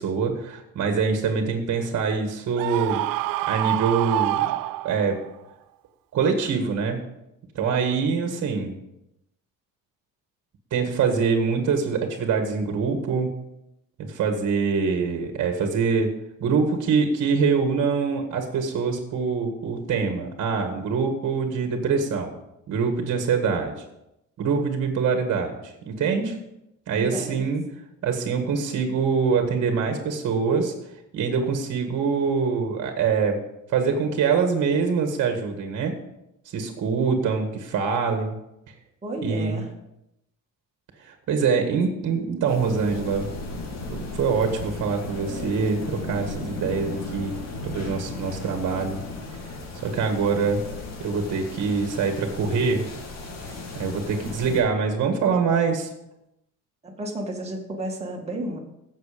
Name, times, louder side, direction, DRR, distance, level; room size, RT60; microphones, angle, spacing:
voice 1, 0.0-3.0 3.5-4.5 4.8-5.2 6.1-7.0 7.6-8.7 10.7-13.3 14.0-16.1 16.4-22.4 22.7-23.7 24.4-26.4 26.9-27.6 28.0-30.7 31.1-33.4 33.7-36.0 36.5-38.4 39.2-39.6 41.0-43.3 43.9-47.4 47.6-49.0 49.8-50.7 51.0-52.9 53.7-55.9, right 5 dB, 50° right, 5 dB, 1.8 m, -24 dB
Screaming, 2.6-5.3, right 17 dB, 75° right, 0.5 m, -26 dB
voice 2, 26.9-27.4 39.0-39.7 54.2-54.3 56.8-58.6, right 1 dB, 20° right, -1 dB, 2.1 m, -32 dB
sound 1, 42.5-54.6, left 3 dB, 50° left, 2.6 m, -35 dB
15.5 x 6.7 x 5.1 m, 0.85 s
cardioid pair, 160°, 34 cm